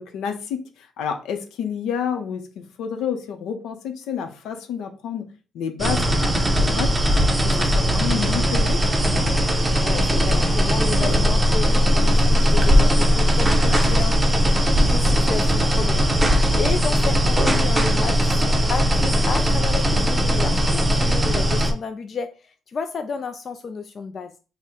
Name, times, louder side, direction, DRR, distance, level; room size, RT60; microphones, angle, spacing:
voice 1, 0.0-5.3 5.5-6.9 7.4-8.8 10.8-11.3 13.7-14.0, left 7 dB, 85° left, 0.6 m, -30 dB
sound 1, 5.8-21.7, equal, 15° right, 0.7 m, -19 dB
voice 2, 9.8-14.2 14.8-16.1 16.6-24.3, left 5 dB, 45° left, 0.4 m, -32 dB
4.2 x 2.1 x 3.6 m
cardioid pair, 90°, 0 cm